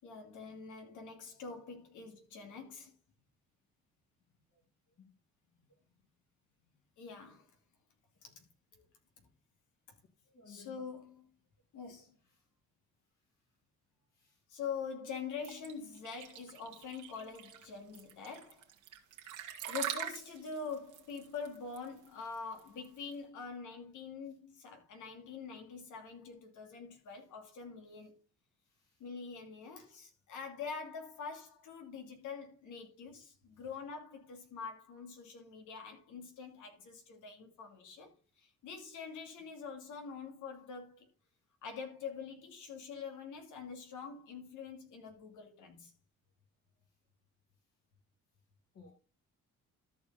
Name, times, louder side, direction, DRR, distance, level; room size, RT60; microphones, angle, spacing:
voice 1, 0.0-2.9 7.0-7.5 8.2-8.4 10.5-11.2 11.7-12.2 14.5-18.7 19.7-28.2 29.0-38.1 38.4-41.1 41.6-45.9, left 5 dB, 85° left, 2.6 m, -45 dB
voice 2, 10.3-10.7 14.1-14.4 19.1-19.5 28.7-29.0 48.7-48.9, left 5 dB, 55° left, 3.1 m, -59 dB
sound 1, 15.4-23.1, right 10 dB, 85° right, 1.7 m, -43 dB
13.0 x 4.8 x 4.1 m
cardioid pair, 90°, 30 cm